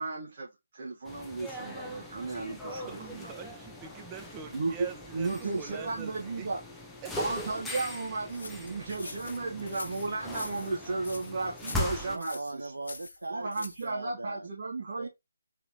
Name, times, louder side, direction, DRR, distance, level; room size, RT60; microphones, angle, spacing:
voice 1, 0.0-3.3 4.5-4.7 5.1-6.6 7.1-12.7 13.3-15.1, right 3 dB, 50° right, 1.4 m, -34 dB
sound 1, 1.0-12.2, left 1 dB, 5° left, 0.6 m, -40 dB
voice 2, 2.9-6.5 7.0-7.6, right 7 dB, 20° right, 0.9 m, -44 dB
sound 2, 8.3-13.9, left 3 dB, 70° left, 0.7 m, -45 dB
voice 3, 12.1-14.5 15.0-15.1, right 2 dB, 80° right, 0.5 m, -40 dB
4.1 x 3.0 x 4.0 m
figure-of-eight pair, 145°, 0 cm